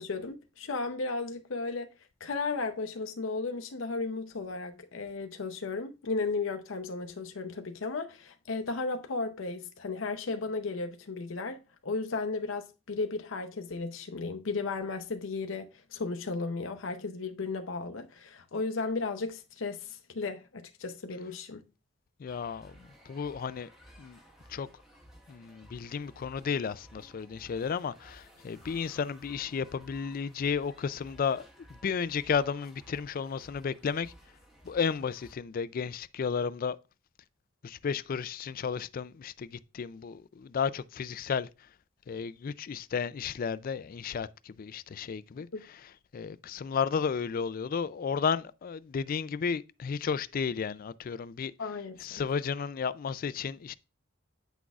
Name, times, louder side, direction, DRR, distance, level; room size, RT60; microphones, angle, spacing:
voice 1, 0.0-1.9 2.2-11.6 11.8-21.6 45.5-45.6 51.6-52.2, left 3 dB, 80° left, 0.7 m, -35 dB
voice 2, 22.2-23.7 24.0-24.2 24.5-24.7 25.3-34.1 34.6-36.8 37.6-41.5 42.1-45.8 46.1-51.5 52.0-53.7, left 6 dB, 45° left, 0.3 m, -33 dB
sound 1, 22.3-35.4, equal, ahead, 1.3 m, -56 dB
9.0 x 6.1 x 2.4 m
head